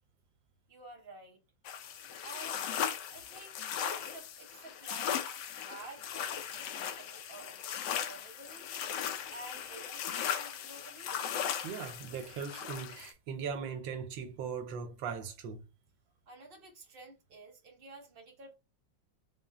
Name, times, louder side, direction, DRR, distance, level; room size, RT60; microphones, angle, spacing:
voice 1, 0.7-1.4 2.2-2.6 3.1-3.6 3.9-8.7 9.3-11.2 16.3-18.5, right 2 dB, 40° right, 0.9 m, -51 dB
sound 1, 1.6-13.1, left 9 dB, 75° left, 1.2 m, -38 dB
voice 2, 11.6-15.7, right 6 dB, 75° right, 1.4 m, -39 dB
3.8 x 2.1 x 4.1 m
omnidirectional pair, 2.1 m